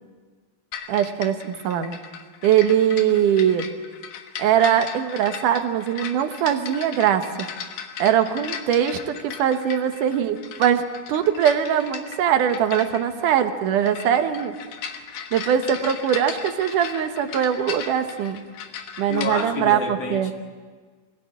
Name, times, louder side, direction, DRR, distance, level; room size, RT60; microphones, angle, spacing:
sound 1, 0.7-19.5, left 7 dB, 85° left, 2.9 m, -37 dB
voice 1, 0.9-2.0 2.4-3.7 4.4-7.5 8.0-14.5 15.3-18.4 19.0-20.3, right 9 dB, 90° right, 2.8 m, -21 dB
voice 2, 19.1-20.3, left 4 dB, 55° left, 2.7 m, -28 dB
24.0 x 16.0 x 8.5 m
omnidirectional pair, 3.5 m